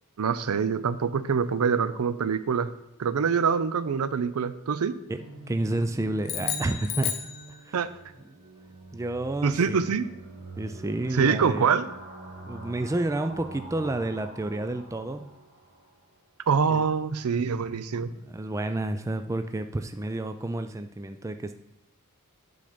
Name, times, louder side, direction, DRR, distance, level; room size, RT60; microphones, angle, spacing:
voice 1, 0.2-2.7 3.0-5.0 7.7-7.9 9.4-10.1 11.1-11.9 16.5-18.1, right 6 dB, 80° right, 14 dB, 0.5 m, -25 dB
voice 2, 5.1-7.2 7.6-7.8 8.9-9.9 10.6-11.7 12.4-15.3 16.7-16.8 17.9-21.6, right 2 dB, 15° right, 8 dB, 0.3 m, -30 dB
sound 1, 5.2-16.0, right 2 dB, 45° right, 1.5 m, -45 dB
sound 2, 6.2-8.0, left 9 dB, 45° left, 0.6 m, -33 dB
8.6 x 3.9 x 5.1 m, 0.93 s
head